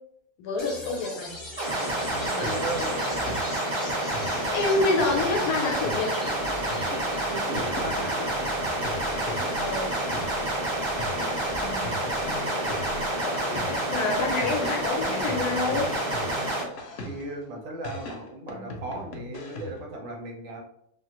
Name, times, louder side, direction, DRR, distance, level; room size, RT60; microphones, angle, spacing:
voice 1, 0.4-1.4 4.5-6.3 9.4-9.9 12.3-12.6 13.2-15.9, left 3 dB, 90° left, 1 dB, 1.1 m, -27 dB
sound 1, 0.6-14.6, left 1 dB, 30° left, 0.6 m, -43 dB
sound 2, 1.6-16.6, right 1 dB, 30° right, 0.5 m, -28 dB
sound 3, 2.1-3.7 4.1-10.6 11.0-14.0 14.4-17.4 17.8-19.9, left 2 dB, 65° left, 0.9 m, -39 dB
voice 2, 2.3-3.0 7.3-8.3 17.0-20.6, right 2 dB, 65° right, 1 dB, 1.0 m, -36 dB
2.7 x 2.4 x 2.8 m, 0.75 s
omnidirectional pair, 1.6 m